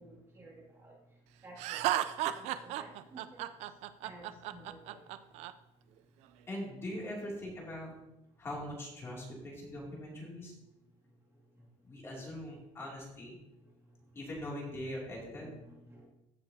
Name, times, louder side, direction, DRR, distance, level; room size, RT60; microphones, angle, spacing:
voice 1, 0.0-3.6 4.0-5.1 11.3-11.6 13.6-14.0 15.6-16.1, right 1 dB, 25° right, -5 dB, 2.4 m, -54 dB
Laughter, 1.6-5.5, right 13 dB, 65° right, 0.5 m, -34 dB
voice 2, 6.5-7.9 8.4-10.5 11.8-13.4 14.1-15.5, left 1 dB, 20° left, -3 dB, 2.6 m, -41 dB
14.5 x 6.6 x 2.8 m, 0.90 s
cardioid pair, 140°, 12 cm